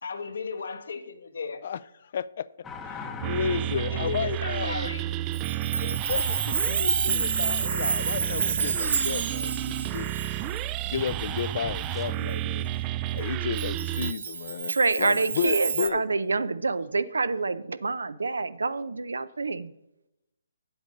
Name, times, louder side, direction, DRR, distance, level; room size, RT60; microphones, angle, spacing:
voice 1, 0.0-1.6 3.7-5.0 5.5-5.6, left 5 dB, 70° left, 1.2 m, -35 dB
voice 2, 1.6-2.5 2.8-4.8 5.8-10.2 10.8-12.7 13.1-16.0, left 7 dB, 50° left, 0.4 m, -33 dB
sound 1, 2.6-8.5 11.9-12.1, left 5 dB, 15° left, 0.8 m, -45 dB
sound 2, 3.2-14.1, right 13 dB, 25° right, 0.3 m, -31 dB
Chime, 5.3-11.4 11.8-11.9 13.6-15.9, right 5 dB, 65° right, 1.0 m, -29 dB
voice 3, 14.7-19.7, right 3 dB, 80° right, 0.5 m, -27 dB
8.2 x 7.9 x 5.2 m
figure-of-eight pair, 140°, 0 cm